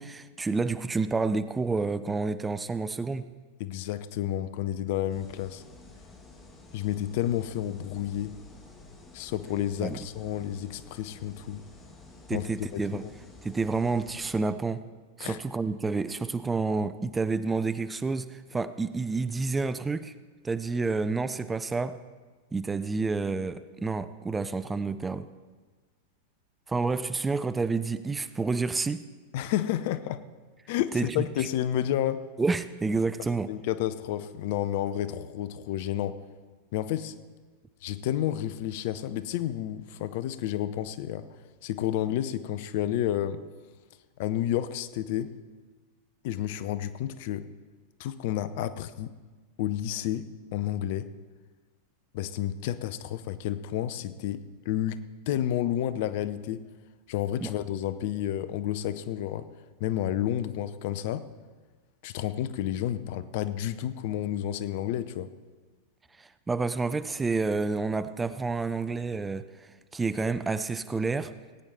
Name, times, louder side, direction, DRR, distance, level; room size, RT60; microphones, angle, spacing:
voice 1, 0.0-3.3 9.8-10.1 12.3-13.0 13.4-14.9 15.2-20.1 20.4-22.0 22.5-25.3 26.7-29.0 30.9-31.3 32.4-33.5 57.4-57.5 66.2-71.3, right 4 dB, 10° right, 13 dB, 0.4 m, -29 dB
voice 2, 3.6-5.6 6.7-8.4 9.1-11.7 12.3-12.5 12.7-13.1 15.2-15.4 29.3-30.2 30.7-32.3 33.5-36.2 36.7-37.1 37.8-41.3 41.6-43.4 44.2-45.3 46.2-47.5 48.0-49.1 49.6-51.1 52.1-56.6 57.1-59.5 59.8-61.3 62.0-65.3, left 11 dB, 50° left, 14 dB, 0.5 m, -30 dB
sound 1, 5.1-14.4, left 2 dB, 20° left, 1.9 m, -51 dB
18.5 x 8.8 x 4.2 m, 1.4 s
figure-of-eight pair, 90°, 0 cm